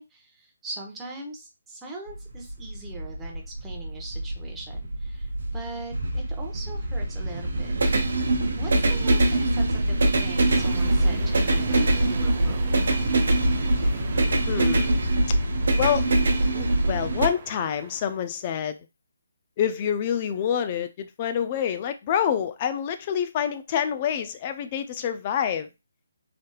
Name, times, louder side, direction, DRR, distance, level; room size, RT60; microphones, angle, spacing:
voice 1, 0.0-7.7 8.6-12.6, right 2 dB, 10° right, 0.8 m, -41 dB
sound 1, 2.1-17.3, right 2 dB, 70° right, 0.7 m, -24 dB
sound 2, 10.4-18.2, right 3 dB, 30° right, 0.5 m, -37 dB
voice 2, 14.5-15.0 15.8-16.1 16.5-18.8 19.6-25.7, left 9 dB, 30° left, 0.4 m, -27 dB
3.4 x 2.7 x 2.3 m
figure-of-eight pair, 150°, 0 cm